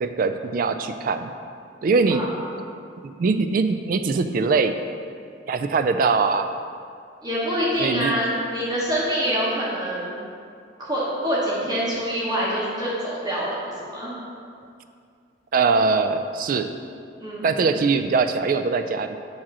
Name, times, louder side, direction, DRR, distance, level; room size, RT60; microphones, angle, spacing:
voice 1, 0.0-1.3 1.8-2.2 3.0-4.7 5.5-6.5 7.8-8.1 15.5-16.7 17.4-19.2, right 4 dB, 45° right, 8 dB, 0.3 m, -22 dB
voice 2, 2.1-2.4 7.2-10.1 10.8-14.1 17.2-17.6, equal, 20° right, -7 dB, 1.2 m, -26 dB
7.3 x 2.9 x 6.0 m, 2.3 s
head